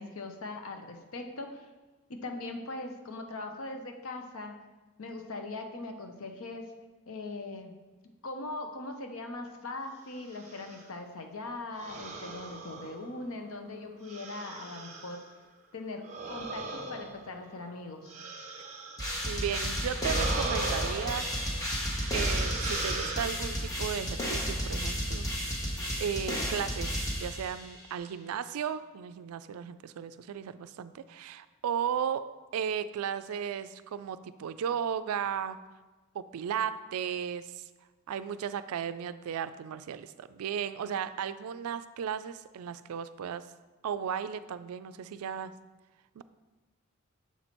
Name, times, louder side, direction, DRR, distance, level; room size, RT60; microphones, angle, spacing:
voice 1, 0.0-1.7 2.1-4.5 5.0-6.7 7.1-7.7 8.2-15.2 15.7-16.0 16.3-18.2, left 2 dB, 70° left, 5 dB, 0.7 m, -40 dB
sound 1, 10.2-10.9 11.8-13.4 14.0-15.3 16.0-19.4 19.9-21.6 22.0-23.8, right 3 dB, 30° right, 0.7 m, -39 dB
sound 2, 19.0-27.8, equal, 15° left, 1.0 m, -32 dB
voice 2, 19.3-21.3 22.1-25.2 26.0-32.3 32.5-35.6 36.1-37.6 38.1-43.4 43.8-45.5 46.2-46.3, right 8 dB, 80° right, 13 dB, 0.3 m, -35 dB
7.1 x 4.2 x 4.4 m, 1.2 s
head